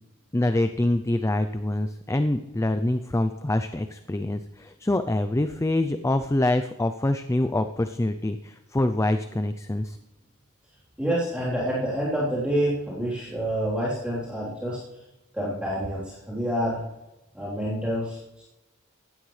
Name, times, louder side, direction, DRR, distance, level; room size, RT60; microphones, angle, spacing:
voice 1, 0.3-10.0, left 1 dB, 15° left, 9 dB, 0.4 m, -25 dB
voice 2, 11.0-14.8 15.3-16.8 17.3-18.2, equal, 5° right, -10 dB, 3.6 m, -27 dB
16.5 x 12.5 x 3.2 m, 0.96 s
head